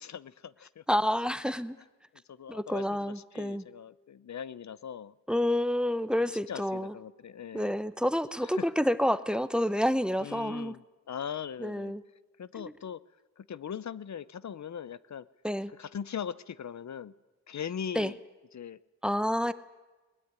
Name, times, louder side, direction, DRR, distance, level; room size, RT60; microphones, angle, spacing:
voice 1, 0.0-0.8 2.3-5.1 6.5-7.7 8.4-8.7 10.2-11.9 12.4-13.0 13.4-15.3 15.8-17.1 17.5-18.2 18.5-18.8, left 8 dB, 70° left, 0.7 m, -40 dB
voice 2, 0.9-1.8 2.5-3.6 5.3-6.9 7.5-10.7 11.6-12.0 12.6-12.7 15.4-15.7 17.9-18.1 19.0-19.5, equal, 5° right, 0.8 m, -29 dB
20.5 x 20.0 x 9.6 m
wide cardioid pair, 125°, 29 cm